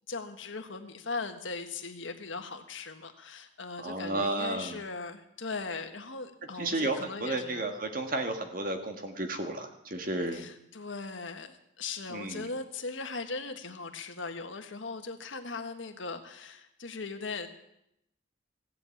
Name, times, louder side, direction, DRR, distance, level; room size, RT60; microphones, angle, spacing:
voice 1, 0.1-7.6 10.3-17.5, left 4 dB, 75° left, 6 dB, 1.5 m, -39 dB
voice 2, 3.8-4.8 6.6-10.4 12.1-12.5, right 2 dB, 45° right, 5 dB, 1.6 m, -32 dB
16.5 x 8.1 x 8.5 m, 0.79 s
head